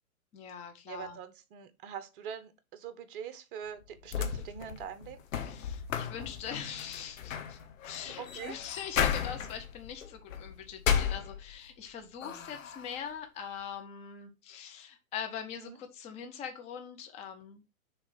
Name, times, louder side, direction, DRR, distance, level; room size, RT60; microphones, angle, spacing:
voice 1, 0.3-1.2 5.4-17.6, left 8 dB, 15° left, 0.7 m, -42 dB
voice 2, 0.9-5.2 7.9-8.6 15.6-15.8, right 8 dB, 35° right, 1.0 m, -43 dB
sound 1, 3.8-11.8 12.2-13.0, left 8 dB, 65° left, 1.2 m, -34 dB
6.5 x 3.3 x 5.1 m
hypercardioid pair, 130°, 43 cm